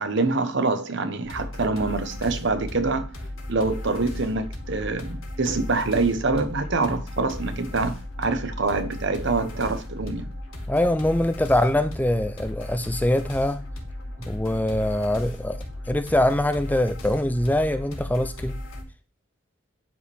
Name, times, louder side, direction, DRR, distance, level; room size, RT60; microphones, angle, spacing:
voice 1, 0.0-3.1 3.5-10.3, right 3 dB, 60° right, 1.0 m, -25 dB
sound 1, 1.2-18.8, left 1 dB, 80° left, 3.3 m, -36 dB
voice 2, 10.7-13.7 14.3-15.6 15.9-18.6, left 1 dB, 10° left, 0.5 m, -23 dB
11.0 x 5.1 x 3.5 m
head